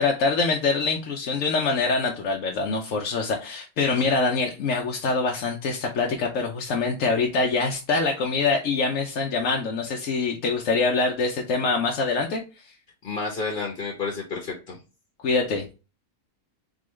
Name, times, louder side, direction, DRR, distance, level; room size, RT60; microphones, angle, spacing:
voice 1, 0.0-12.4 15.2-15.7, left 4 dB, 65° left, 0 dB, 1.1 m, -24 dB
voice 2, 13.0-14.8, left 4 dB, 40° left, 0 dB, 1.1 m, -30 dB
3.8 x 3.7 x 3.1 m, 0.31 s
omnidirectional pair, 1.5 m